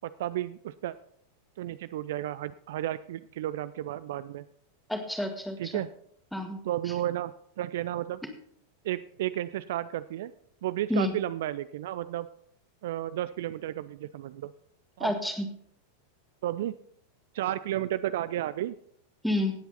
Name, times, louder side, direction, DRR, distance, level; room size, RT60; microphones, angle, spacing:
voice 1, 0.0-1.0 1.6-4.4 5.6-5.9 6.6-8.2 8.8-10.3 10.6-12.3 12.8-14.5 15.0-15.1 16.4-16.7 17.3-18.8, right 13 dB, 55° right, 14 dB, 0.4 m, -32 dB
voice 2, 4.9-5.8 6.3-6.6 8.2-8.3 10.9-11.1 15.0-15.5 19.2-19.5, left 1 dB, ahead, 5 dB, 1.9 m, -29 dB
17.5 x 8.0 x 4.1 m, 0.67 s
figure-of-eight pair, 90°, 0 cm